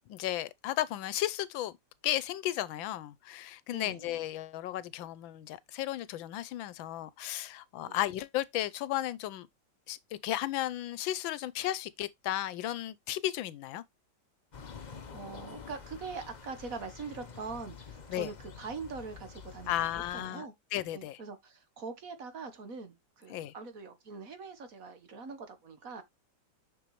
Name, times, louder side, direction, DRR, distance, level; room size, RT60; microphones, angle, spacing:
voice 1, 0.1-1.7 2.0-9.5 9.9-10.0 10.2-13.8 18.1-18.3 19.7-21.2 23.3-23.5, left 13 dB, 90° left, 1.4 m, -34 dB
voice 2, 3.7-4.1 7.8-8.0 14.8-20.5 20.9-26.0, right 4 dB, 50° right, 1.5 m, -43 dB
sound 1, 14.5-20.3, left 6 dB, 45° left, 0.5 m, -48 dB
6.9 x 6.6 x 3.1 m
omnidirectional pair, 2.1 m